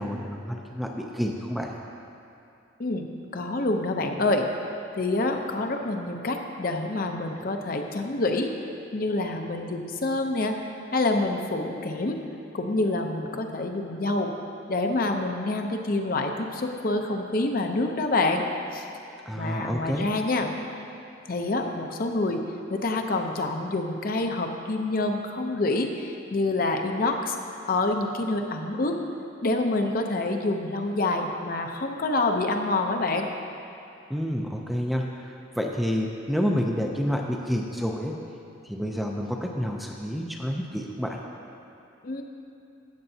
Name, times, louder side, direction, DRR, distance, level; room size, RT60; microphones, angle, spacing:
voice 1, 0.0-1.7 19.3-20.1 34.1-38.2 38.7-41.2, equal, ahead, 0 dB, 0.4 m, -29 dB
voice 2, 2.8-4.5 4.9-8.5 8.9-10.5 10.9-12.2 12.5-14.3 14.7-18.4 18.7-18.9 19.4-20.5 21.3-22.4 22.7-27.4 27.7-28.9 29.4-33.3 42.0-42.2, left 2 dB, 50° left, 4 dB, 0.6 m, -27 dB
13.5 x 7.9 x 2.7 m, 2.7 s
head